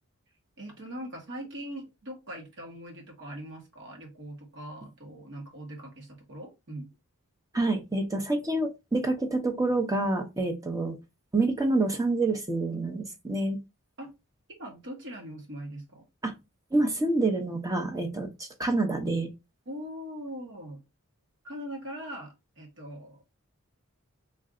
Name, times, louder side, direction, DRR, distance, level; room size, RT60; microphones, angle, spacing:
voice 1, 0.6-6.9 14.0-14.1 14.5-16.0 19.6-20.8 21.4-23.2, equal, 60° right, 1.4 m, -41 dB
voice 2, 7.5-10.9 11.3-13.6 16.2-16.3 16.7-18.3 18.6-19.3, right 2 dB, 15° right, 0.8 m, -27 dB
3.3 x 2.6 x 3.6 m
head